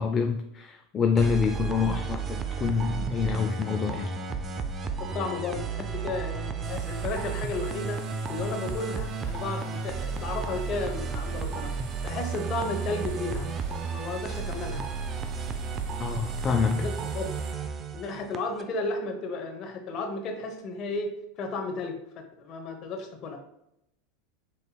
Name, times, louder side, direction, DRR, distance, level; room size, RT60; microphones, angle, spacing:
voice 1, 0.0-4.1 16.0-16.9, left 6 dB, 30° left, 5 dB, 0.4 m, -27 dB
sound 1, 1.2-18.6, right 5 dB, 30° right, 0.5 m, -33 dB
voice 2, 5.1-11.7 12.0-14.9 16.7-17.3 17.9-22.0 22.4-23.4, left 3 dB, 45° left, 4 dB, 1.0 m, -34 dB
sound 2, 6.6-17.5, right 5 dB, 65° right, 0.8 m, -47 dB
5.4 x 4.0 x 2.3 m, 0.81 s
hypercardioid pair, 105°, 0 cm